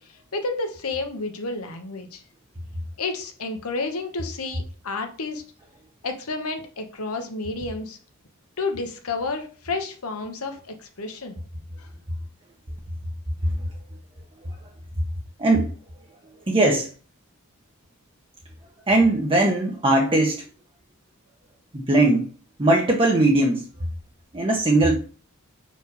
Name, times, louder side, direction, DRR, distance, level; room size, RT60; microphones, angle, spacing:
voice 1, 0.3-2.2 3.0-5.4 6.0-8.0 8.6-11.4, left 3 dB, 85° left, 5 dB, 1.0 m, -30 dB
voice 2, 15.4-15.7 16.5-16.9 18.9-20.5 21.7-22.3 22.6-23.7 24.3-25.0, right 2 dB, 25° right, 0 dB, 0.8 m, -20 dB
5.3 x 4.8 x 4.0 m, 0.39 s
head